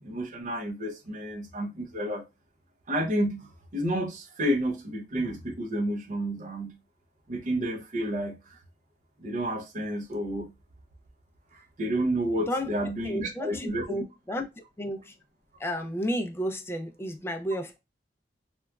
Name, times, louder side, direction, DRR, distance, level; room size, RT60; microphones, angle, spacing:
voice 1, 0.0-2.2 2.9-6.8 7.3-8.6 9.2-10.5 11.5-13.8, right 1 dB, 45° right, 0.6 m, -30 dB
voice 2, 13.0-14.5 14.8-15.1 15.6-17.8, equal, 15° left, 0.3 m, -32 dB
3.0 x 2.3 x 2.2 m
head